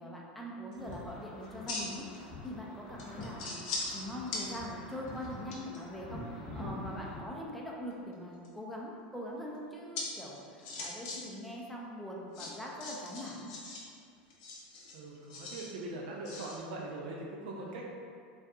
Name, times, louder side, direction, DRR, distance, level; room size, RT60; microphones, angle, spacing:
voice 1, 0.0-3.6 3.9-13.5 17.6-17.8, equal, ahead, -3 dB, 0.4 m, -42 dB
sound 1, 0.7-0.9 1.4-2.2 2.4-2.5 3.0-4.0 4.3-4.4 4.9-5.8 7.9-8.5 9.9-10.0 10.3-11.2 11.4-11.5 12.3-13.8 14.3-15.7 16.2-16.6, left 3 dB, 60° left, 0.6 m, -40 dB
sound 2, 0.8-7.2, left 2 dB, 25° left, 0.9 m, -46 dB
voice 2, 14.9-17.8, right 2 dB, 70° right, -2 dB, 0.5 m, -41 dB
2.6 x 2.3 x 2.3 m, 2.3 s
hypercardioid pair, 100°, 5 cm